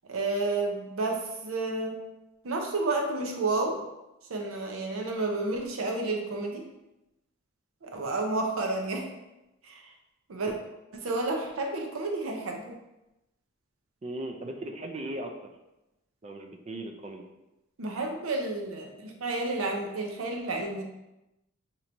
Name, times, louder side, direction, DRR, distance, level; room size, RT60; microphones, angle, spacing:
voice 1, 0.1-2.0 2.4-3.8 4.3-6.7 7.8-9.1 9.6-9.9 10.3-10.5 10.9-12.8 17.8-20.8, right 2 dB, 80° right, 2 dB, 0.6 m, -31 dB
voice 2, 14.0-15.5 16.2-17.2, right 1 dB, 30° right, 4 dB, 0.4 m, -38 dB
2.9 x 2.6 x 4.4 m, 0.95 s
head